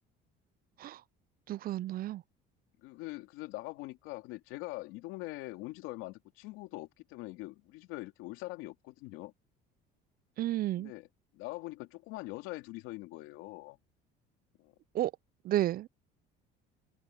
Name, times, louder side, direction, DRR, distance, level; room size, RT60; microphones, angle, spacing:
voice 1, 1.5-2.2 10.4-10.9 14.9-15.1 15.4-15.9, right 14 dB, 45° right, 0.4 m, -31 dB
voice 2, 2.8-9.3 10.8-11.1 11.3-13.8 14.6-14.7, left 20 dB, 80° left, 2.7 m, -43 dB
supercardioid pair, 100°, 21 cm